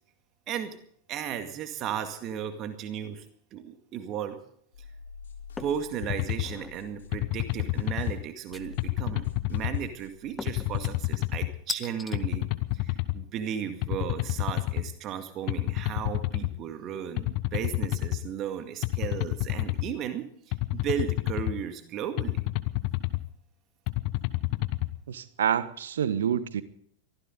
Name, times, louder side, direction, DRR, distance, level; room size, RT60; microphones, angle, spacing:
voice 1, 1.1-3.3 3.5-4.4 5.6-12.5 12.7-20.3 20.7-22.4, right 8 dB, 35° right, 8 dB, 2.1 m, -35 dB
sound 1, 4.7-10.9, left 6 dB, 65° left, 3.8 m, -47 dB
sound 2, 5.6-5.9 6.3-6.8 8.5-9.1 10.4-10.7 11.7-12.2, left 4 dB, 15° left, 1.1 m, -38 dB
sound 3, 6.0-6.5 7.1-8.1 8.8-9.8 10.5-11.5 12.1-13.2 13.8-14.8 15.5-16.5 17.2-18.2 18.8-19.9 20.5-21.5 22.2-23.2 23.9-24.9, left 21 dB, 45° left, 1.1 m, -29 dB
voice 2, 25.1-26.6, right 9 dB, 65° right, 15 dB, 1.3 m, -27 dB
23.5 x 15.5 x 4.0 m, 0.64 s
figure-of-eight pair, 90°, 0 cm